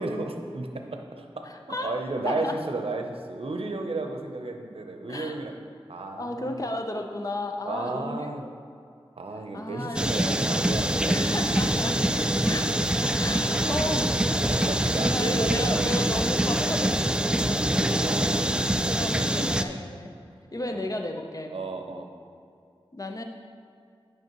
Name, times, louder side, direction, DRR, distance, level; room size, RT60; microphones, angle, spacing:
voice 1, 0.0-5.5 5.9-6.5 7.6-8.5 9.2-11.1 14.5-15.9 18.0-18.5 19.1-19.2 20.5-20.8 21.5-22.1, right 2 dB, 75° right, 4 dB, 0.6 m, -33 dB
voice 2, 1.4-2.6 5.1-5.4 6.2-8.5 9.5-10.1 11.0-12.0 12.4-12.7 13.0-14.3 14.6-18.6 18.9-20.1 20.5-21.5 22.9-23.2, left 1 dB, 35° left, 4 dB, 0.7 m, -34 dB
sound 1, 10.0-19.6, right 1 dB, 10° right, 0.3 m, -25 dB
9.2 x 5.8 x 3.0 m, 2.4 s
wide cardioid pair, 50°, 10 cm